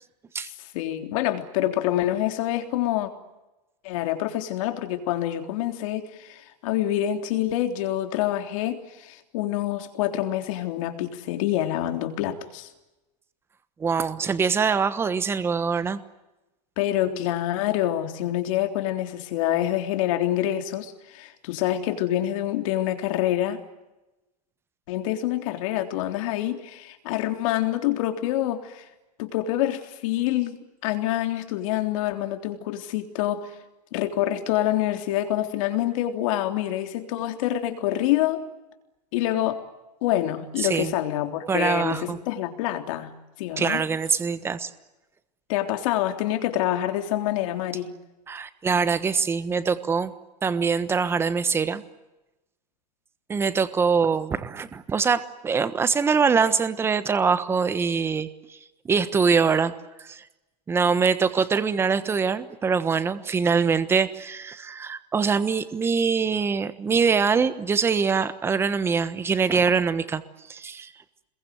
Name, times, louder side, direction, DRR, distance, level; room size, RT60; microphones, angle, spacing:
voice 1, 0.7-3.1 3.8-12.7 16.8-23.6 24.9-28.8 29.2-30.6 30.8-33.5 33.9-38.5 39.1-39.6 40.0-43.1 43.4-43.8 45.5-47.9, left 13 dB, 55° left, 6 dB, 3.6 m, -26 dB
voice 2, 13.8-16.0 40.6-40.9 41.5-42.2 43.6-44.7 48.3-50.1 50.4-51.8 53.3-58.6 58.8-59.7 60.0-60.2 60.7-70.2 70.5-70.9, right 5 dB, 10° right, 12 dB, 1.2 m, -23 dB
26.5 x 22.5 x 9.4 m, 1.0 s
supercardioid pair, 155°, 21 cm